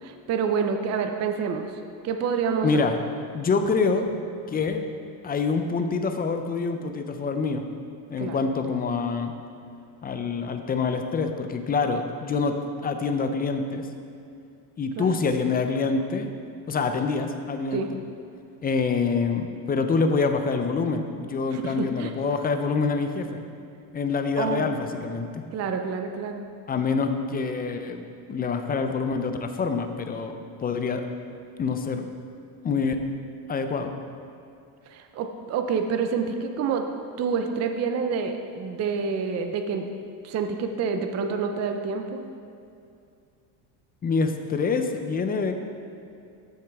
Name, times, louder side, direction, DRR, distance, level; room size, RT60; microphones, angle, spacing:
voice 1, 0.0-1.7 2.0-2.8 8.2-8.4 15.0-15.1 17.7-17.9 21.5-22.1 24.4-24.7 25.5-26.5 34.9-36.8 37.2-39.9 40.2-42.2, right 5 dB, 35° right, 5 dB, 0.6 m, -28 dB
voice 2, 2.6-3.0 3.3-4.2 4.5-4.8 5.2-7.6 8.1-9.3 10.0-13.9 14.8-16.3 16.7-18.0 18.6-23.4 23.9-25.4 26.7-30.4 30.6-31.0 31.6-32.1 32.6-33.0 33.5-33.9 44.0-45.5, left 4 dB, 20° left, 7 dB, 0.4 m, -26 dB
13.0 x 6.5 x 3.5 m, 2.4 s
supercardioid pair, 120°, 49 cm